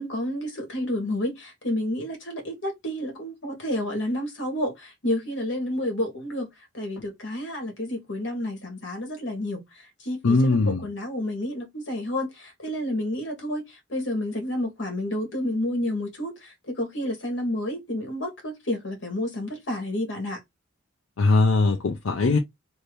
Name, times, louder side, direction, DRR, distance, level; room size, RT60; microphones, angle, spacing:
voice 1, 0.0-9.6 10.0-20.4, left 1 dB, 65° left, 1.4 m, -30 dB
voice 2, 10.2-10.8 21.2-22.4, left 3 dB, 85° left, 0.5 m, -20 dB
2.8 x 2.7 x 3.2 m
head